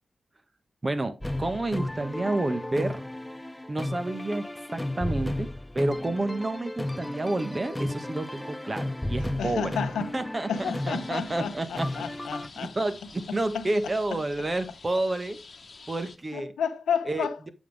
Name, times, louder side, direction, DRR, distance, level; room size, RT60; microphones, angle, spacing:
voice 1, 0.8-3.0 3.7-9.7 10.1-11.9 12.6-15.4 15.9-16.5 17.1-17.5, right 2 dB, 35° right, 1.5 m, -30 dB
sound 1, 1.2-12.5, left 1 dB, 15° left, 0.4 m, -34 dB
voice 2, 9.4-10.1 10.5-12.7 13.3-13.7 14.1-14.2 16.3-17.5, left 7 dB, 90° left, 0.9 m, -31 dB
sound 2, 10.5-16.2, left 4 dB, 55° left, 1.2 m, -48 dB
7.5 x 7.4 x 3.5 m
supercardioid pair, 40°, 0 cm